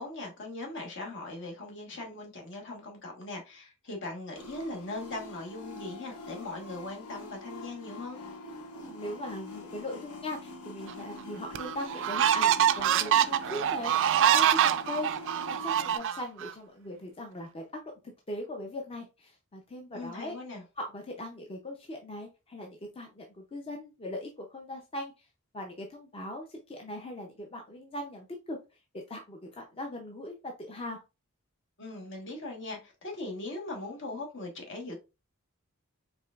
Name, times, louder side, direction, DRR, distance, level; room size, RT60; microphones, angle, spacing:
voice 1, 0.0-8.2 19.9-20.6 31.8-34.9, left 2 dB, 60° left, 1.3 m, -40 dB
sound 1, 4.3-16.0, left 2 dB, 90° left, 0.9 m, -44 dB
voice 2, 8.8-15.1 15.4-20.4 20.8-25.3 25.5-28.6 28.9-31.0, left 1 dB, 25° left, 0.5 m, -40 dB
sound 2, 10.9-11.0 11.6-16.5, right 10 dB, 60° right, 0.3 m, -25 dB
4.8 x 3.2 x 2.4 m
head